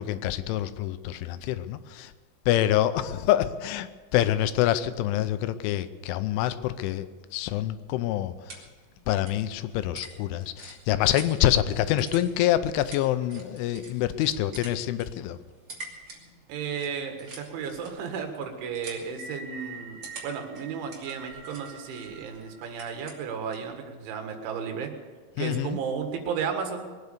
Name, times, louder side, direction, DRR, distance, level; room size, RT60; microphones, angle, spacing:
voice 1, 0.0-2.1 2.5-7.1 7.3-8.6 9.1-15.4 25.4-25.8, left 13 dB, 85° left, 12 dB, 3.2 m, -26 dB
sound 1, 7.9-23.7, right 3 dB, 35° right, 3.0 m, -48 dB
voice 2, 16.5-24.9 25.4-26.9, right 6 dB, 80° right, 4 dB, 4.0 m, -34 dB
sound 2, 19.2-23.4, right 4 dB, 60° right, 1.7 m, -45 dB
21.5 x 9.4 x 6.7 m, 1.5 s
omnidirectional pair, 5.4 m